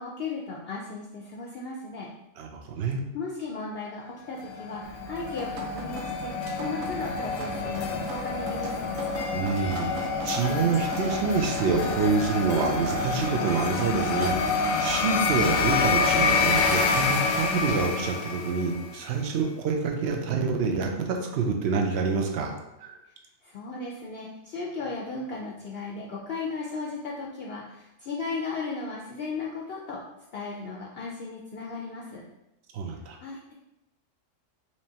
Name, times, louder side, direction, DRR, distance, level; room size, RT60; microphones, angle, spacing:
voice 1, 0.0-2.1 3.1-8.9 23.4-30.0 30.3-32.2 33.2-33.5, left 4 dB, 60° left, -2 dB, 0.7 m, -36 dB
voice 2, 2.4-3.0 9.3-22.6 22.8-23.0 32.7-33.2, right 5 dB, 60° right, 3 dB, 0.8 m, -27 dB
sound 1, 4.3-18.9, left 4 dB, 90° left, 1.0 m, -27 dB
Drip, 4.8-17.8, right 1 dB, 90° right, 1.0 m, -41 dB
4.5 x 3.0 x 2.8 m, 0.92 s
omnidirectional pair, 1.4 m